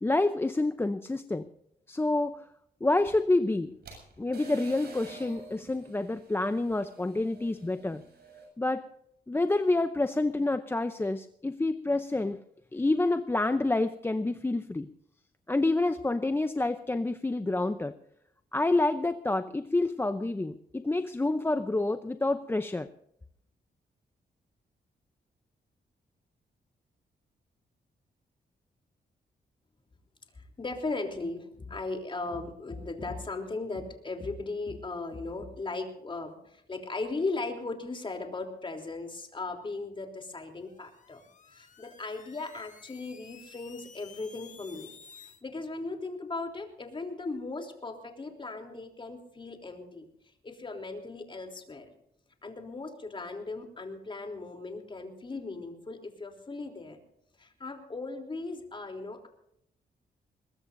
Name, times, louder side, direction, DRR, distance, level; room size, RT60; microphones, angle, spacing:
voice 1, 0.0-1.5 1.9-2.5 2.8-3.8 4.2-8.0 8.6-8.9 9.3-12.4 12.7-14.9 15.5-17.9 18.5-22.9, left 2 dB, 15° left, 9 dB, 0.6 m, -28 dB
sound 1, 3.0-8.5, right 3 dB, 70° right, 7.6 m, -49 dB
voice 2, 30.3-44.9 45.2-50.0 50.4-51.9 52.4-57.0 57.4-59.3, left 3 dB, 30° left, 3 dB, 3.4 m, -37 dB
sound 2, 40.6-45.4, left 6 dB, 50° left, 1.4 m, -53 dB
21.5 x 21.0 x 2.7 m, 0.74 s
cardioid pair, 110°, 17 cm